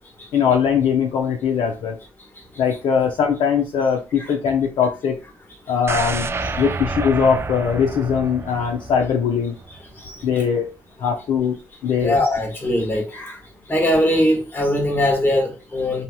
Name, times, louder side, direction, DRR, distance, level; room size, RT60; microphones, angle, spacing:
voice 1, 0.3-2.0 2.6-5.2 5.7-6.3 6.6-9.5 10.2-10.7 11.0-11.6 11.8-12.2, left 7 dB, 65° left, 0.5 m, -20 dB
sound 1, 5.9-9.9 10.2-10.3, right 3 dB, 30° right, 0.3 m, -29 dB
voice 2, 12.0-13.4 13.7-16.0, left 1 dB, 25° left, 1.2 m, -21 dB
2.8 x 2.7 x 2.3 m
cardioid pair, 75°, 9 cm